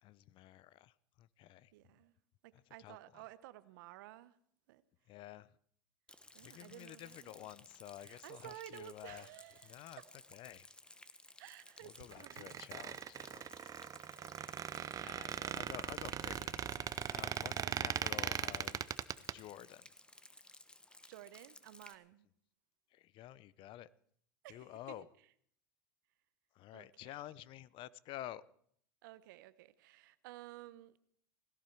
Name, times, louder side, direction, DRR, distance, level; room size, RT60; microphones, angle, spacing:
voice 1, 0.0-1.7 2.8-3.2 5.1-5.5 6.4-9.3 9.6-10.0 10.3-10.7 11.8-13.4 15.0-17.5 17.8-18.9 19.3-19.9 22.9-23.9 24.5-25.1 26.5-28.4, left 13 dB, 55° left, 0.7 m, -51 dB
voice 2, 1.7-2.1 2.4-4.4 4.7-4.8 6.3-7.5 8.0-10.1 11.4-12.6 14.2-14.5 14.9-15.8 17.6-18.3 21.1-22.3 24.4-25.1 26.7-27.2 29.0-31.0, right 15 dB, 75° right, 0.9 m, -54 dB
Rain, 6.1-22.0, left 2 dB, 10° left, 1.1 m, -58 dB
Squeak, 12.1-19.3, right 9 dB, 35° right, 0.6 m, -39 dB
17.0 x 16.5 x 4.6 m
hypercardioid pair, 95°, 11 cm